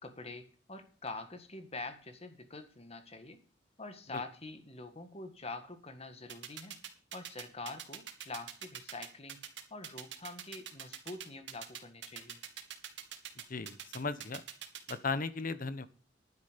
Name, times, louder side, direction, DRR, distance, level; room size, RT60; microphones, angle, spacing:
voice 1, 0.0-3.4 3.8-6.8 7.1-9.4 9.7-12.4, left 3 dB, 35° left, 8 dB, 1.8 m, -45 dB
sound 1, 6.3-14.9, right 10 dB, 75° right, 2.2 m, -43 dB
voice 2, 13.5-14.4 14.9-15.9, left 4 dB, 50° left, 14 dB, 1.0 m, -36 dB
11.0 x 9.9 x 5.2 m, 0.42 s
head